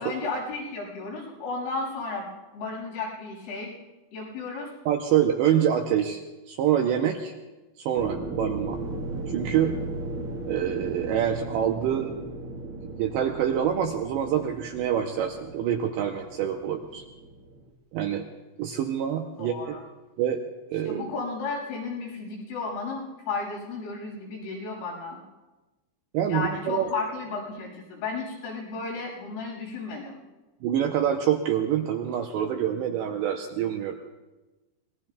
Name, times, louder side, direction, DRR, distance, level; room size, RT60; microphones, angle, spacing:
voice 1, 0.0-2.3 2.5-3.7 4.1-4.7 19.4-19.8 20.9-25.2 26.3-30.2, left 4 dB, 85° left, -5 dB, 8.9 m, -33 dB
voice 2, 4.9-6.2 6.5-7.3 7.8-8.8 9.3-9.8 10.5-12.1 12.8-17.0 17.9-18.2 18.6-19.8 20.2-20.4 20.7-21.0 26.1-26.9 30.6-34.0, right 9 dB, 85° right, 3 dB, 2.5 m, -26 dB
sound 1, 8.0-17.7, right 2 dB, 60° right, 2.4 m, -37 dB
25.5 x 21.0 x 2.3 m, 1.1 s
omnidirectional pair, 5.8 m